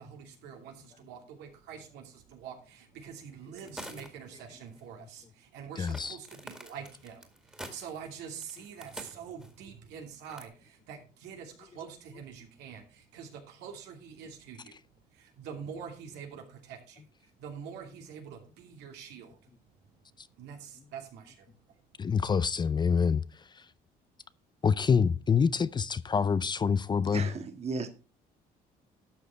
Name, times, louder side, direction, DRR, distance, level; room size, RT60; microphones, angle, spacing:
voice 1, 0.0-19.4 20.3-21.8, right 7 dB, 85° right, 2.7 m, -46 dB
sound 1, 3.6-4.3 4.6-4.7 5.9-9.6 10.2-10.4, right 1 dB, 5° right, 2.1 m, -46 dB
voice 2, 5.8-6.2 20.2-20.3 22.0-23.7 24.6-27.3, left 6 dB, 25° left, 0.5 m, -27 dB
voice 3, 27.1-27.9, right 4 dB, 40° right, 1.7 m, -35 dB
12.0 x 6.4 x 4.4 m
cardioid pair, 110°, 17 cm